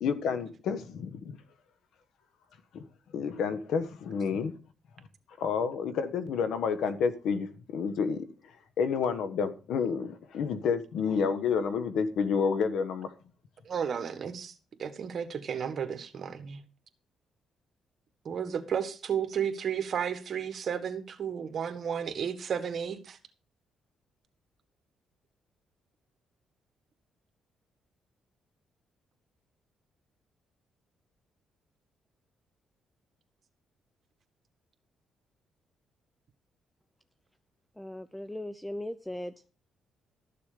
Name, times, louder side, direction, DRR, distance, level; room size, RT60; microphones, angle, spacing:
voice 1, 0.0-1.2 2.7-2.8 3.1-4.5 5.4-7.5 7.7-8.2 8.8-13.1, left 6 dB, 75° left, 1.3 m, -29 dB
voice 2, 13.6-14.5 14.8-16.6 18.2-23.2, right 7 dB, 55° right, 1.6 m, -33 dB
voice 3, 37.8-39.3, left 1 dB, 5° left, 0.6 m, -38 dB
13.0 x 6.9 x 5.0 m
cardioid pair, 90°, 0 cm